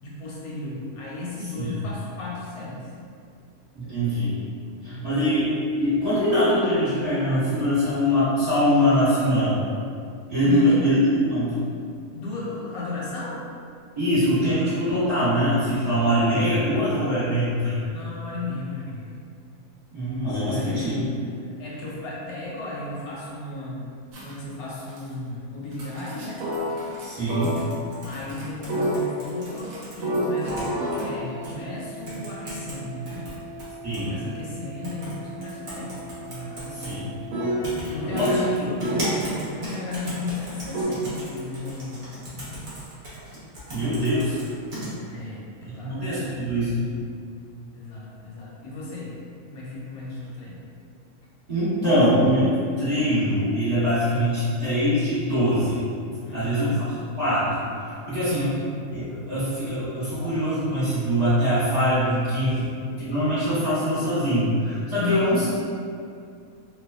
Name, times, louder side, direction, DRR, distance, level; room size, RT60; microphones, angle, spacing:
voice 1, 0.0-2.9 3.8-4.2 4.8-5.1 10.4-10.8 12.1-13.4 17.8-19.1 20.5-21.1 21.6-23.9 24.2-26.4 28.0-33.3 33.9-37.6 37.9-39.2 39.5-42.6 45.1-46.0 47.7-49.2 49.5-50.6 56.2-56.8 62.5-62.6 64.9-65.2, left 2 dB, 90° left, -5 dB, 1.1 m, -35 dB
voice 2, 3.7-4.4 4.8-5.5 5.8-9.6 10.3-11.6 14.0-17.9 19.9-21.0 27.0-27.6 33.8-34.2 36.7-37.1 37.8-38.3 43.7-44.4 45.8-46.9 51.5-55.8 56.3-56.8 57.2-57.7 58.0-58.5 58.9-62.7 63.0-65.5, equal, 30° right, -15 dB, 1.1 m, -23 dB
sound 1, 24.1-24.4 24.7-25.1 25.7-27.7 28.1-39.2 40.7-40.8, right 1 dB, 75° right, 1.0 m, -31 dB
sound 2, 27.4-29.9 30.4-31.0 31.4-31.5 32.1-32.8 33.1-34.1 34.8-35.1 35.4-36.9 37.6-37.9 38.2-44.9, right 1 dB, 45° right, 0.7 m, -36 dB
2.6 x 2.2 x 2.3 m, 2.4 s
omnidirectional pair, 1.5 m